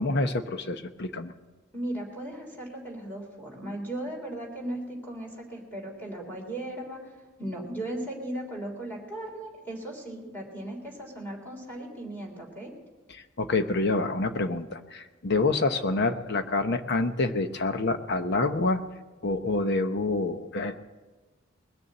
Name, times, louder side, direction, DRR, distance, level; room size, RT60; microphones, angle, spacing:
voice 1, 0.0-1.3 13.1-18.8 19.2-20.8, left 3 dB, 55° left, 8 dB, 0.9 m, -27 dB
voice 2, 1.7-7.1 7.4-12.7, right 1 dB, 10° left, -1 dB, 3.6 m, -37 dB
20.5 x 6.9 x 7.6 m, 1.3 s
head